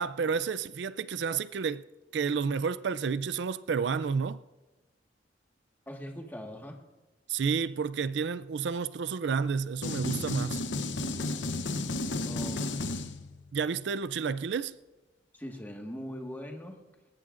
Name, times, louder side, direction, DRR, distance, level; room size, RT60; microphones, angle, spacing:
voice 1, 0.0-1.8 2.1-4.4 7.3-10.6 13.5-14.7, right 5 dB, 65° right, 0.4 m, -30 dB
voice 2, 5.9-6.8 12.3-13.1 15.3-16.8, equal, 10° left, 1.5 m, -41 dB
sound 1, 9.8-13.5, left 2 dB, 75° left, 0.8 m, -33 dB
19.5 x 19.0 x 2.5 m
head